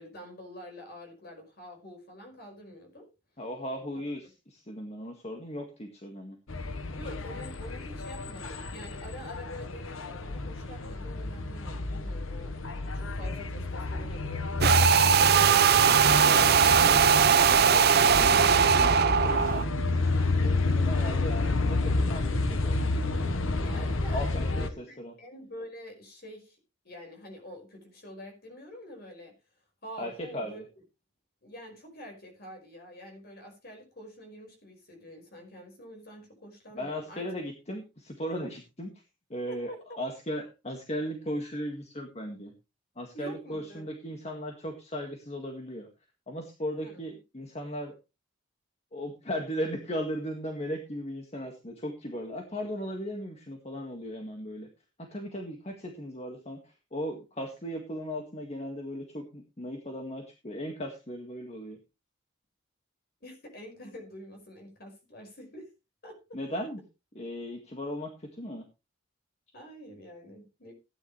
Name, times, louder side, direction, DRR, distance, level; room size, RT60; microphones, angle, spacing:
voice 1, 0.0-3.1 3.9-4.3 6.9-12.5 12.9-15.6 23.6-24.3 24.6-26.6 26.8-29.3 29.8-30.7 31.4-37.3 39.5-39.8 43.1-43.9 46.8-47.2 63.2-65.7 66.0-66.2 69.5-70.7, equal, 50° left, 3 dB, 5.3 m, -46 dB
voice 2, 3.4-6.4 16.2-17.2 17.5-18.4 18.7-19.7 20.4-23.0 23.7-25.1 30.0-30.6 36.7-38.9 39.3-42.5 43.0-45.9 46.3-48.0 48.9-54.7 55.0-61.8 66.3-66.8 67.2-68.6, equal, 35° left, 3 dB, 1.8 m, -37 dB
sound 1, 6.5-24.7, left 2 dB, 85° left, 1.2 m, -30 dB
sound 2, 14.6-19.6, right 7 dB, 50° right, 0.6 m, -20 dB
16.0 x 10.0 x 3.2 m, 0.28 s
head